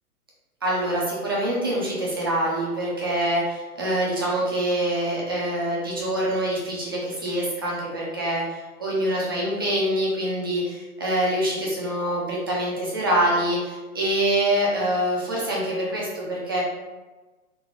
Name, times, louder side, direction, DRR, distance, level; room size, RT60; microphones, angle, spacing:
voice 1, 0.6-16.6, right 1 dB, 15° right, -6 dB, 0.3 m, -25 dB
3.7 x 2.2 x 4.4 m, 1.2 s
hypercardioid pair, 130°, 45 cm